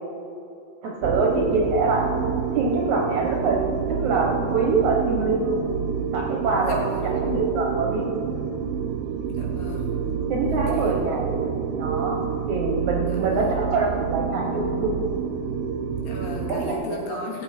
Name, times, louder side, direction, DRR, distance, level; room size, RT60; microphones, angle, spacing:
voice 1, 0.8-2.1 2.5-3.6 3.9-5.7 6.1-8.1 10.3-11.4 11.8-15.0 16.5-17.3, right 3 dB, 65° right, 0 dB, 2.0 m, -25 dB
sound 1, 1.0-16.7, right 7 dB, 85° right, 2.5 m, -28 dB
voice 2, 6.7-7.1 9.3-10.0 10.7-10.9 13.1-13.6 16.0-17.4, left 2 dB, 70° left, -2 dB, 3.5 m, -36 dB
17.0 x 8.3 x 4.3 m, 2.6 s
omnidirectional pair, 4.3 m